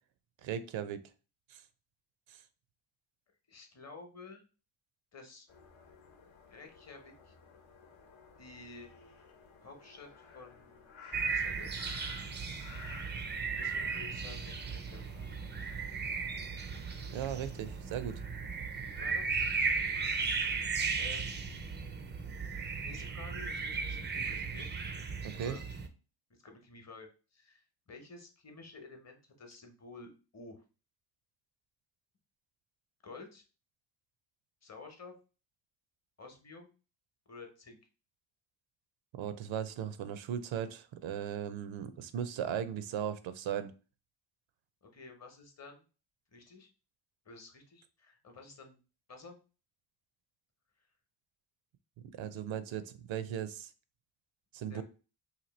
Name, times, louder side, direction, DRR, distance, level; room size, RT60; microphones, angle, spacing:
voice 1, 0.4-1.0 17.1-18.2 25.2-25.6 39.1-43.7 52.2-53.7 54.5-54.8, right 9 dB, 75° right, 12 dB, 0.5 m, -37 dB
voice 2, 3.5-4.4 5.1-5.5 6.5-7.3 8.4-8.9 9.6-10.1 10.3-10.9 11.3-11.8 13.5-15.3 19.0-19.5 19.7-21.5 22.3-24.7 25.4-25.6 26.3-30.6 33.0-33.4 34.6-35.1 36.2-36.7 37.3-37.8 44.9-45.8 46.3-46.7 47.2-48.8 49.1-49.4 54.7-54.8, left 3 dB, 35° left, 5 dB, 0.9 m, -52 dB
sound 1, 5.5-18.0, left 5 dB, 75° left, 0.9 m, -55 dB
sound 2, 11.1-25.9, right 5 dB, 25° right, 0.3 m, -36 dB
2.9 x 2.6 x 4.0 m, 0.34 s
cardioid pair, 130°, 47 cm